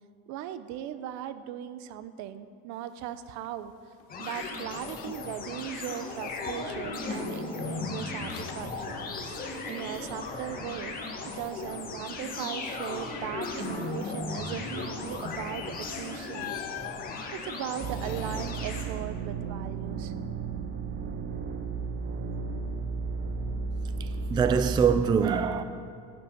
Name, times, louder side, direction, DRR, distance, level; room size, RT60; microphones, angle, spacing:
voice 1, 0.3-3.7 4.2-9.1 9.7-11.0 11.2-16.7 17.3-20.1, right 10 dB, 65° right, 0.9 m, -38 dB
Squeak, 3.4-3.6 3.9-5.4 5.7-6.3 6.7-9.5 9.8-11.6 12.0-12.3 12.7-13.3 15.4-15.6 16.3-18.5, left 15 dB, 85° left, 0.6 m, -46 dB
sound 1, 4.1-18.8, left 3 dB, 30° left, 1.9 m, -36 dB
sound 2, 17.8-25.0, right 4 dB, 35° right, 0.9 m, -34 dB
voice 2, 24.0-25.6, right 6 dB, 15° right, 0.3 m, -24 dB
12.5 x 9.2 x 9.3 m
cardioid pair, 165°, 30 cm